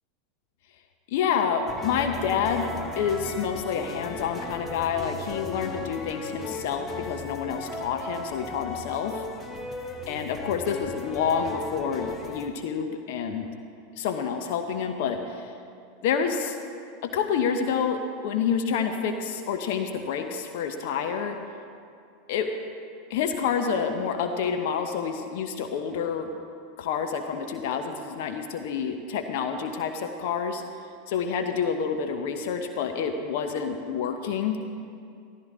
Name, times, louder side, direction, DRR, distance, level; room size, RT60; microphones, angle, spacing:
voice 1, 1.1-9.3 10.1-13.5 14.0-15.5 16.0-16.6 17.0-21.4 22.3-22.5 23.1-26.3 26.8-30.6 31.1-34.6, left 6 dB, 60° left, 6 dB, 0.9 m, -28 dB
sound 1, 1.7-12.5, left 3 dB, 25° left, 1.2 m, -36 dB
14.5 x 14.0 x 3.7 m, 2.4 s
hypercardioid pair, 90°, 0 cm